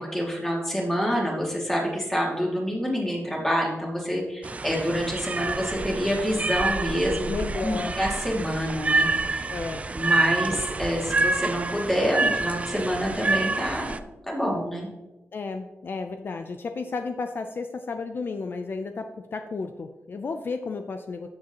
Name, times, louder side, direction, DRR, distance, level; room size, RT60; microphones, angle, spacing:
voice 1, 0.0-7.3 7.6-9.5 9.9-14.0 14.3-14.9, equal, 5° left, -3 dB, 2.4 m, -27 dB
sound 1, 4.4-14.0, right 3 dB, 25° right, 0.4 m, -27 dB
voice 2, 7.3-8.0 9.5-9.9 15.3-21.3, left 4 dB, 45° left, 7 dB, 0.5 m, -33 dB
13.5 x 7.4 x 3.0 m, 1.1 s
wide cardioid pair, 145°, 5 cm